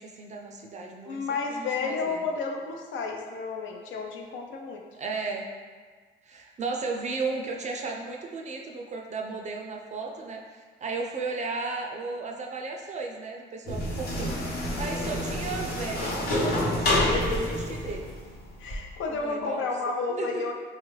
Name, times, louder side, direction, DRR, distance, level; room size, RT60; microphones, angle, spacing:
voice 1, 0.0-1.2 1.5-2.3 4.9-5.5 6.2-14.3 14.8-18.1 19.1-19.7 20.1-20.4, right 4 dB, 35° right, 1 dB, 0.4 m, -35 dB
voice 2, 1.0-4.8 14.9-15.1 17.0-17.6 18.6-20.5, left 4 dB, 75° left, 2 dB, 0.5 m, -31 dB
sound 1, 13.7-18.8, left 1 dB, 50° left, 0.9 m, -28 dB
3.3 x 2.3 x 3.1 m, 1.5 s
cardioid pair, 90°, 20 cm